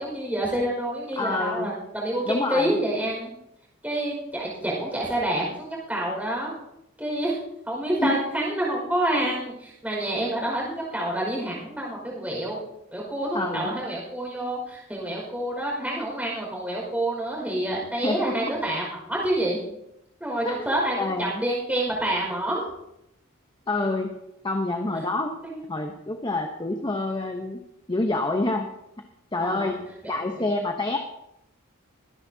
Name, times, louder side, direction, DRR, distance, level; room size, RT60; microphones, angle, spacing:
voice 1, 0.0-3.3 3.8-6.5 7.0-7.4 7.7-12.6 12.9-19.6 20.2-22.7 25.4-25.6 29.4-29.7 30.0-30.5, right 1 dB, 5° right, -3 dB, 5.1 m, -28 dB
voice 2, 1.2-1.7 2.2-2.7 8.0-8.2 13.3-13.7 18.0-18.3 20.4-20.6 21.0-21.4 23.7-24.2 24.4-25.3 25.7-27.6 27.9-28.7 29.3-31.0, left 2 dB, 20° left, 4 dB, 0.9 m, -27 dB
24.0 x 10.5 x 2.8 m, 0.83 s
head